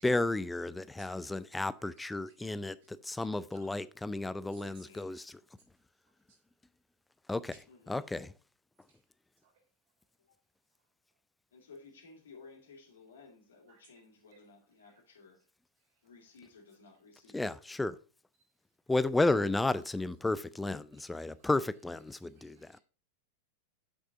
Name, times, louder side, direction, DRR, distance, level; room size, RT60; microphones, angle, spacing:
voice 1, 0.0-5.4 7.3-7.5 7.9-8.3 17.3-18.0 18.9-22.8, left 2 dB, 5° left, 0.4 m, -32 dB
voice 2, 0.8-1.4 1.8-2.5 2.8-3.0 3.5-3.7 4.5-5.2 6.0-6.4 8.9-9.0 9.4-9.7 10.8-11.2 13.7-14.0 14.3-14.4 14.8-15.1 15.8-16.1 18.4-18.5 20.9-21.5 22.1-22.8, right 4 dB, 55° right, 3.1 m, -66 dB
voice 3, 4.6-5.1 7.7-8.0 11.5-15.4 16.0-17.5, left 4 dB, 65° left, 2.2 m, -56 dB
7.7 x 6.0 x 3.7 m
figure-of-eight pair, 90°, 0 cm